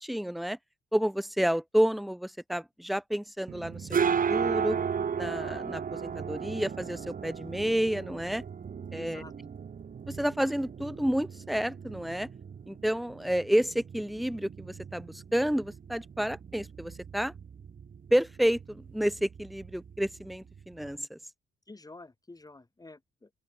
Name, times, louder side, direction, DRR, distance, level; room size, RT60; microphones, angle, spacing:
voice 1, 0.0-0.6 0.9-4.0 4.3-4.8 5.1-8.4 8.9-9.2 10.1-12.3 12.7-17.3 18.1-21.2, equal, ahead, 0.4 m, -30 dB
sound 1, 3.5-21.0, right 7 dB, 45° right, 2.7 m, -36 dB
voice 2, 8.9-9.5 21.7-23.3, left 2 dB, 20° left, 4.2 m, -49 dB
open air
cardioid pair, 90°, 20 cm